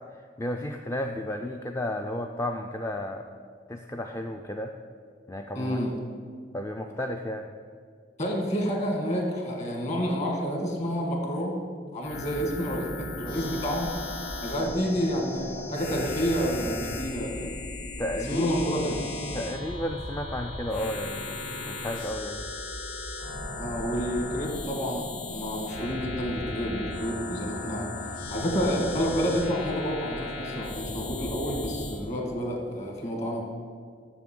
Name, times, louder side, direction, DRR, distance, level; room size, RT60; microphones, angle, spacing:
voice 1, 0.4-3.3 3.7-4.7 5.3-5.9 6.5-7.5 14.6-14.7 18.0-18.5 19.3-22.4, left 1 dB, 15° left, 4 dB, 0.3 m, -33 dB
voice 2, 5.6-6.0 8.2-11.6 11.9-13.9 14.4-17.6 18.3-19.0 23.6-27.9 28.3-33.4, equal, 40° left, 1 dB, 1.9 m, -29 dB
sound 1, 12.0-32.0, left 2 dB, 65° left, 1.1 m, -36 dB
7.0 x 6.6 x 7.8 m, 2.1 s
head